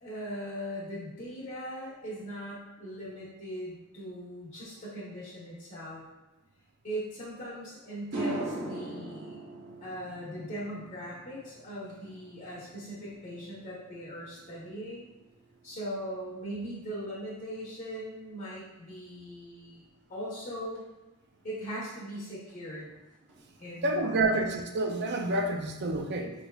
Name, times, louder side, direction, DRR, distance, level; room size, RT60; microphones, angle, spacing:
voice 1, 0.0-6.0 6.8-9.5 9.8-15.1 15.6-19.8 20.1-20.8 21.4-22.9 23.6-24.4, equal, 40° left, -7 dB, 1.0 m, -40 dB
sound 1, 7.4-7.5 7.9-16.4 16.7-17.2 20.8-20.9 22.5-22.6 22.9-23.0 23.3-23.8, right 2 dB, 90° right, 0.8 m, -42 dB
voice 2, 23.8-26.3, right 2 dB, 50° right, 4 dB, 0.5 m, -28 dB
5.1 x 3.4 x 2.3 m, 1.0 s
head